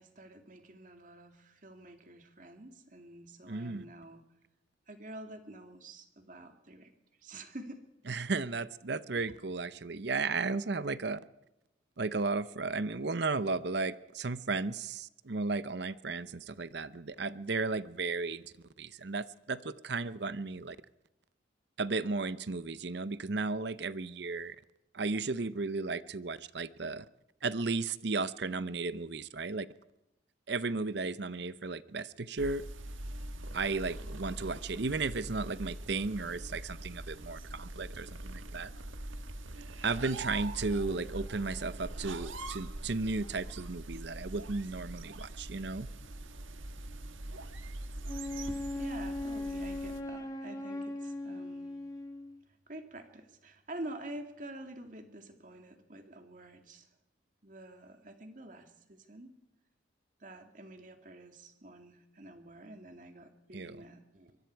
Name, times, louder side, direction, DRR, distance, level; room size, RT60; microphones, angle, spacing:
voice 1, 0.0-4.2 4.9-6.9 7.2-7.8 48.5-51.7 52.7-56.9 57.4-59.3 60.2-64.4, right 1 dB, 40° right, 2.4 m, -48 dB
voice 2, 3.5-3.8 8.1-11.2 12.0-20.8 21.8-24.6 24.9-27.1 27.4-29.7 30.5-32.6 33.5-38.7 39.8-45.9 63.5-63.8, right 3 dB, 60° right, 0.7 m, -34 dB
sound 1, 32.4-50.0, right 1 dB, 80° right, 1.5 m, -43 dB
Wind instrument woodwind instrument, 48.1-52.4, left 2 dB, 20° left, 2.2 m, -39 dB
24.5 x 23.0 x 4.7 m
head